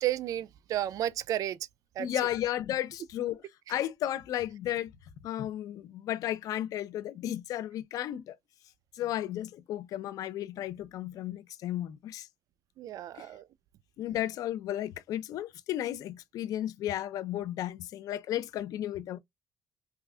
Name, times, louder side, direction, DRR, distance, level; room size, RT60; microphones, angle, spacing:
voice 1, 0.0-1.6 2.0-2.1 12.8-13.4, right 12 dB, 75° right, 0.4 m, -32 dB
voice 2, 2.0-3.4 3.7-4.9 5.2-8.4 8.9-12.3 13.2-13.3 14.0-19.2, left 12 dB, 85° left, 0.6 m, -34 dB
5.6 x 2.4 x 2.3 m
cardioid pair, 105°, 6 cm